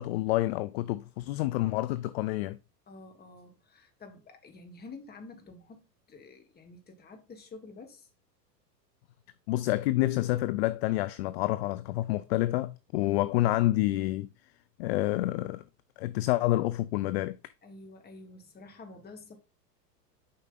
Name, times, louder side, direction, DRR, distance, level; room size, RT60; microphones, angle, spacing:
voice 1, 0.0-2.6 9.5-14.3 14.8-15.6 16.0-17.4, left 17 dB, 45° left, 0.4 m, -28 dB
voice 2, 2.9-8.1 17.6-19.4, left 3 dB, 20° left, 1.8 m, -49 dB
7.5 x 5.4 x 3.9 m
hypercardioid pair, 95°, 49 cm